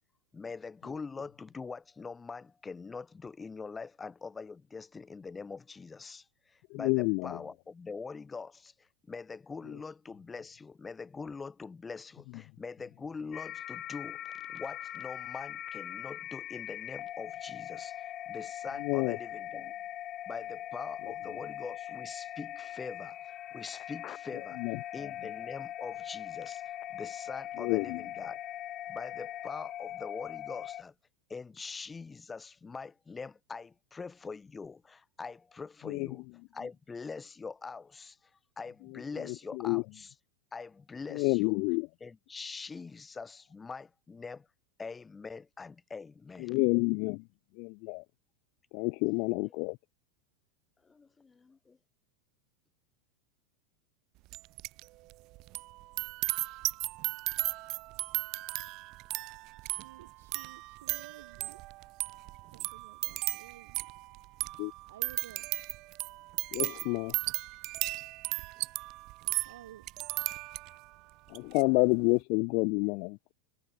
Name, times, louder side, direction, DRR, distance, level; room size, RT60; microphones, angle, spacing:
voice 1, 0.3-19.7 20.3-24.6 24.9-28.4 28.9-30.9 31.3-36.2 36.5-38.2 38.6-40.1 40.5-41.6 42.0-44.5 44.8-46.5 50.8-51.8, left 4 dB, 15° left, 2.9 m, -43 dB
voice 2, 6.7-7.4 18.8-19.2 24.6-25.1 27.6-28.0 35.9-36.1 39.2-39.8 41.1-41.9 46.4-47.2 47.6-48.0 48.7-49.8 64.6-64.7 66.5-67.2 71.3-73.3, left 34 dB, 55° left, 0.4 m, -29 dB
sound 1, 13.3-30.8, left 12 dB, 35° left, 0.8 m, -41 dB
sound 2, 54.3-54.8 55.1-70.9 71.3-71.6, right 21 dB, 45° right, 1.5 m, -36 dB
voice 3, 59.6-61.6 62.5-63.9 64.9-65.5 69.4-69.9, right 12 dB, 90° right, 4.4 m, -53 dB
supercardioid pair, 135°, 0 cm